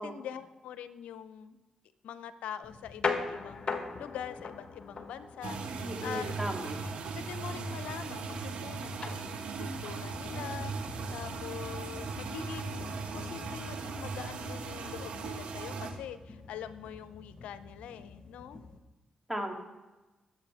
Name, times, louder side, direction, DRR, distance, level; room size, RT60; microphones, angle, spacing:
voice 1, 0.0-1.6 2.0-6.3 7.2-10.8 11.1-12.9 13.1-18.6, left 9 dB, 80° left, 13 dB, 0.7 m, -44 dB
sound 1, 2.6-18.8, left 4 dB, 45° left, 1.6 m, -42 dB
sound 2, 5.4-15.9, right 4 dB, 75° right, 1.5 m, -38 dB
voice 2, 5.8-6.8 12.2-12.3 19.3-19.5, equal, 5° right, 1 dB, 3.0 m, -36 dB
20.5 x 8.4 x 3.5 m, 1.1 s
supercardioid pair, 50°, 2 cm